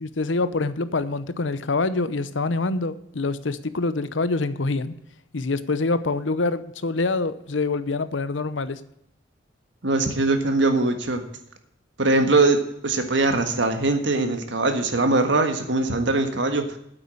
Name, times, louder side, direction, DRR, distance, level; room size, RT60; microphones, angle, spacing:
voice 1, 0.0-4.9 5.3-8.8, left 3 dB, 80° left, 14 dB, 0.8 m, -25 dB
voice 2, 9.8-11.2 12.0-16.8, right 2 dB, 70° right, 7 dB, 1.6 m, -21 dB
9.0 x 8.2 x 7.8 m, 0.76 s
head